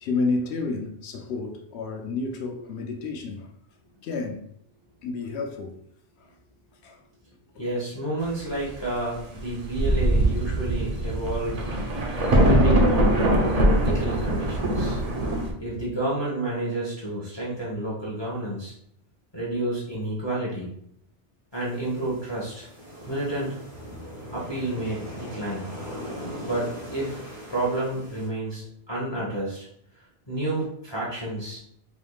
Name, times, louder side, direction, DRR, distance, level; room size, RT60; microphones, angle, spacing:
voice 1, 0.0-3.5 4.0-4.4 5.0-5.8 6.2-6.3 6.8-7.0 7.5-7.6 15.6-15.8, left 3 dB, 80° left, 0.9 m, -30 dB
voice 2, 7.6-11.6 12.3-13.2 13.6-15.0 15.6-18.7 19.3-20.7 21.5-22.7 23.1-23.5 24.3-25.7 26.4-27.1 27.5-29.7 30.3-31.6, right 1 dB, 25° left, 1.0 m, -30 dB
Thunder, 9.4-9.5 9.7-15.5, right 1 dB, 40° right, 0.7 m, -22 dB
sound 1, 21.5-28.3, equal, 70° right, 2.1 m, -40 dB
4.7 x 3.4 x 2.3 m
omnidirectional pair, 1.1 m